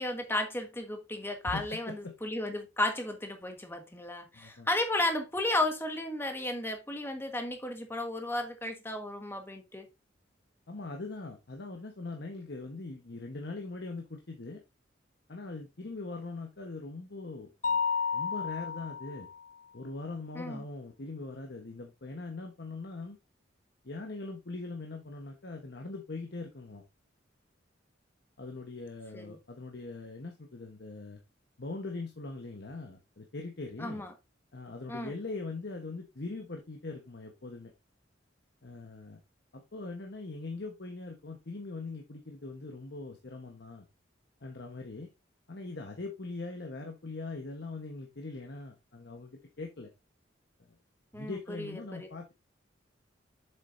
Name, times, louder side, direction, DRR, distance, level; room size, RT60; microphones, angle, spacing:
voice 1, 0.0-9.9 20.3-20.6 29.1-29.4 33.8-34.1 34.9-35.1 51.1-52.1, left 1 dB, 10° left, 1.4 m, -34 dB
voice 2, 1.4-2.1 4.3-4.7 10.7-14.6 15.3-17.8 18.1-19.3 19.7-23.2 23.8-26.8 28.4-31.2 31.6-34.0 34.5-37.7 38.6-39.2 39.5-43.8 44.4-45.1 45.5-49.9 50.6-50.7 51.1-52.3, left 3 dB, 60° left, 1.1 m, -41 dB
Mallet percussion, 17.6-19.4, left 6 dB, 45° left, 0.7 m, -31 dB
7.4 x 6.9 x 2.6 m
head